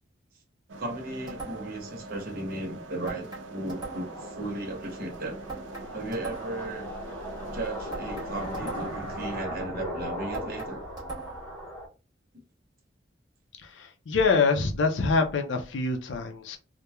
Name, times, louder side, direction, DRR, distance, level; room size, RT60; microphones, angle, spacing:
voice 1, 0.7-5.4 5.9-6.9 7.5-10.8, right 2 dB, 50° right, 0.7 m, -36 dB
sound 1, 0.7-9.4, right 2 dB, 85° right, 0.5 m, -44 dB
sound 2, 1.3-1.9 3.1-4.3 5.5-6.7 7.9-9.1 10.3-11.6, right 4 dB, 20° right, 1.2 m, -40 dB
sound 3, 3.6-11.9, equal, 10° left, 0.9 m, -38 dB
voice 2, 13.6-16.6, left 4 dB, 80° left, 0.5 m, -25 dB
2.9 x 2.1 x 2.2 m
head